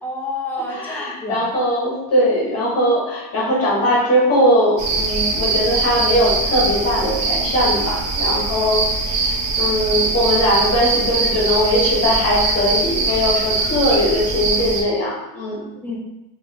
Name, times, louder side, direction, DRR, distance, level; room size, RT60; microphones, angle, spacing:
voice 1, 0.0-1.4 15.7-16.0, left 1 dB, 5° left, -3 dB, 0.6 m, -28 dB
voice 2, 0.7-15.6, equal, 35° left, -5 dB, 1.2 m, -20 dB
sound 1, 4.8-14.8, right 3 dB, 60° right, 1.2 m, -21 dB
4.2 x 3.0 x 2.8 m, 0.96 s
cardioid pair, 135°, 44 cm